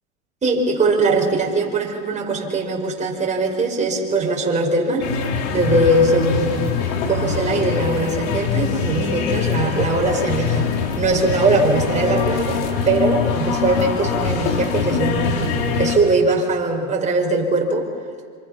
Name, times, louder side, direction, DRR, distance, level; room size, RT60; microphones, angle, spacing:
voice 1, 0.4-5.1 5.5-6.8 7.1-17.9, right 2 dB, 20° right, -1 dB, 5.5 m, -21 dB
sound 1, 5.0-16.0, left 6 dB, 65° left, 3.9 m, -23 dB
26.5 x 26.5 x 6.0 m, 2.1 s
hypercardioid pair, 105°, 37 cm